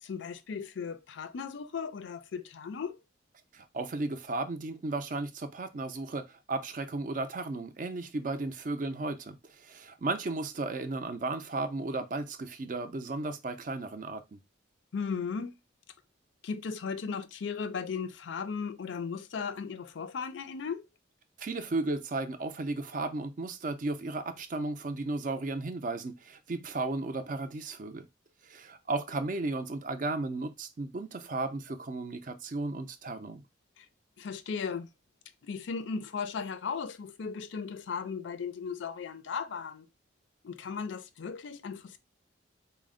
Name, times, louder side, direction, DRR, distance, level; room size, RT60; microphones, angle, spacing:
voice 1, 0.0-3.0 14.9-15.5 16.4-20.9 33.8-33.9 34.2-34.9 35.4-39.9 40.4-42.0, left 5 dB, 65° left, 0.4 m, -36 dB
voice 2, 3.5-14.4 21.4-28.1 28.4-33.4, right 3 dB, 40° right, 0.4 m, -34 dB
4.2 x 2.0 x 3.6 m
head